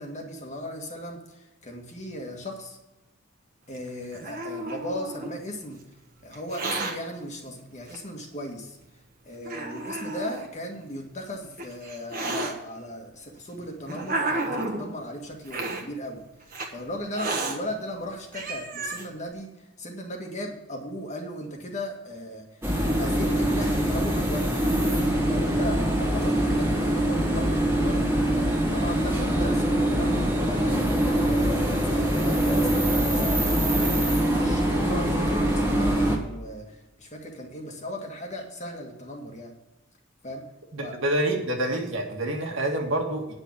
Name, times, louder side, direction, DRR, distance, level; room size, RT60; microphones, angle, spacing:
voice 1, 0.0-2.8 3.7-5.8 6.2-8.8 9.3-16.2 16.7-19.5 19.8-22.5 22.8-24.5 25.3-33.3 33.8-39.5 40.2-40.5 40.8-40.9, equal, 35° left, 2 dB, 1.8 m, -37 dB
Hiss, 3.7-5.4 6.3-6.9 7.9-8.0 8.8-8.9 9.4-10.5 11.3-12.5 13.4-14.9 15.5-15.8 16.5-16.7 17.1-17.6 18.0-18.1 18.3-19.1, right 2 dB, 40° right, 1.4 m, -31 dB
sound 1, 22.6-36.2, right 1 dB, 10° right, 1.8 m, -23 dB
voice 2, 40.7-43.3, right 1 dB, 60° right, 2 dB, 1.9 m, -27 dB
9.7 x 6.5 x 7.2 m, 0.98 s
head